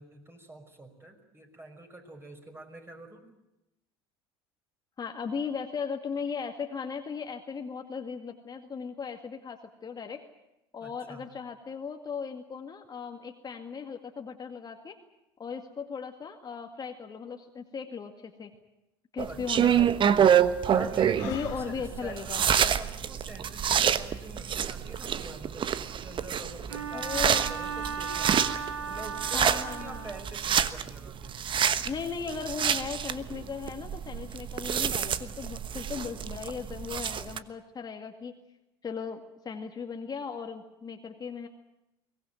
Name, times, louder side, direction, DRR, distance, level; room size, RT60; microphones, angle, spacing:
voice 1, 0.0-3.3 10.8-11.3 19.3-19.9 20.7-31.3, right 2 dB, 15° right, 4 dB, 5.8 m, -46 dB
voice 2, 5.0-10.2 10.7-15.0 15.4-18.5 19.1-19.9 21.3-22.4 26.9-27.5 29.3-30.1 31.8-38.3 38.8-41.5, left 6 dB, 30° left, 4 dB, 2.1 m, -37 dB
sound 1, 19.2-37.4, right 8 dB, 35° right, 1.2 m, -27 dB
Breathing, 21.1-22.9, left 10 dB, 65° left, 2.2 m, -43 dB
Bowed string instrument, 26.7-30.4, right 6 dB, 90° right, 2.0 m, -36 dB
23.0 x 18.5 x 9.2 m, 0.92 s
hypercardioid pair, 80°, 14 cm